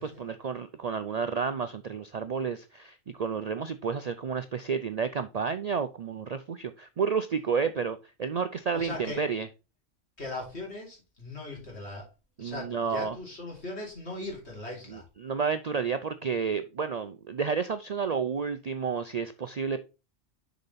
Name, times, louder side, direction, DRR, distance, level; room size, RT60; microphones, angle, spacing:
voice 1, 0.0-9.5 12.4-13.2 14.9-19.8, right 6 dB, 85° right, 0.3 m, -31 dB
voice 2, 8.7-9.2 10.2-12.1 12.4-15.0, left 2 dB, 55° left, 3.5 m, -39 dB
6.7 x 5.1 x 4.1 m
omnidirectional pair, 1.3 m